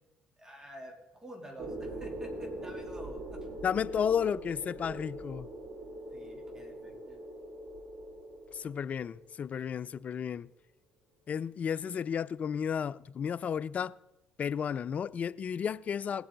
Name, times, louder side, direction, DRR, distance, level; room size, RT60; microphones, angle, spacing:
voice 1, 0.4-3.4 6.1-7.2, right 1 dB, 15° right, 3.0 m, -48 dB
sound 1, 1.6-9.4, right 1 dB, 55° right, 2.5 m, -42 dB
voice 2, 3.6-5.5 8.5-10.5 11.3-13.9 14.4-16.3, left 7 dB, 40° left, 0.3 m, -33 dB
18.5 x 7.9 x 3.9 m
hypercardioid pair, 70°, 4 cm